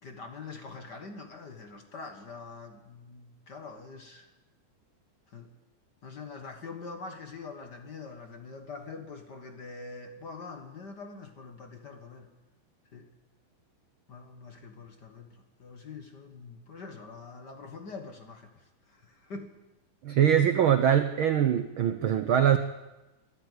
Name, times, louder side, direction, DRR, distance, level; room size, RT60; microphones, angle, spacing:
voice 1, 0.0-4.3 5.3-5.5 6.0-12.3 12.9-13.1 14.1-19.6, left 4 dB, 45° left, 5 dB, 1.5 m, -44 dB
voice 2, 20.0-22.6, right 9 dB, 90° right, 9 dB, 1.1 m, -23 dB
22.5 x 14.5 x 8.1 m, 1.0 s
omnidirectional pair, 3.6 m